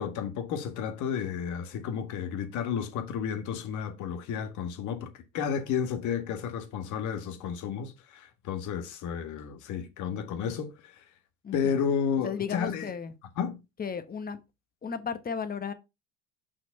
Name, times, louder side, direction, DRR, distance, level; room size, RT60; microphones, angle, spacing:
voice 1, 0.0-5.1 5.3-11.0 11.5-12.9 13.4-13.6, left 7 dB, 60° left, 1.7 m, -32 dB
voice 2, 11.4-11.8 12.2-13.1 13.8-14.4 14.8-15.7, left 6 dB, 25° left, 1.2 m, -34 dB
5.8 x 4.4 x 5.7 m
supercardioid pair, 95°, 33 cm